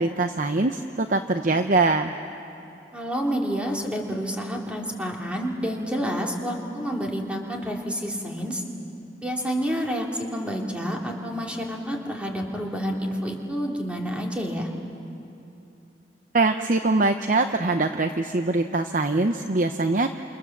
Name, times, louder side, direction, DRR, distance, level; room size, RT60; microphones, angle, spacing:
voice 1, 0.0-2.1 16.3-20.1, right 3 dB, 45° right, 7 dB, 0.8 m, -23 dB
voice 2, 2.9-8.6 9.2-14.7, equal, 5° right, -1 dB, 2.9 m, -29 dB
28.0 x 28.0 x 7.4 m, 2.8 s
head